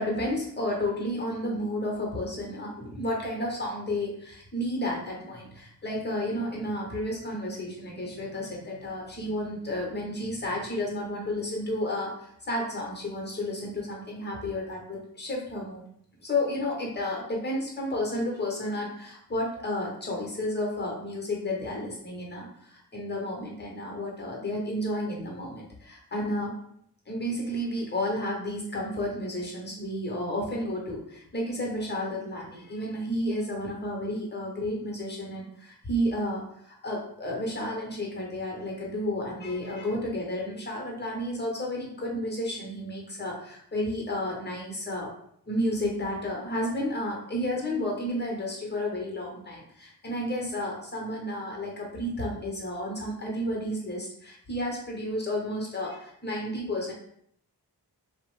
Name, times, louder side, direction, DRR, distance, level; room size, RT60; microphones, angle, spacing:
voice 1, 0.0-15.8 16.2-26.5 27.1-45.1 45.5-56.9, left 1 dB, 25° left, -1 dB, 1.0 m, -32 dB
2.4 x 2.0 x 3.1 m, 0.67 s
cardioid pair, 50°, 39 cm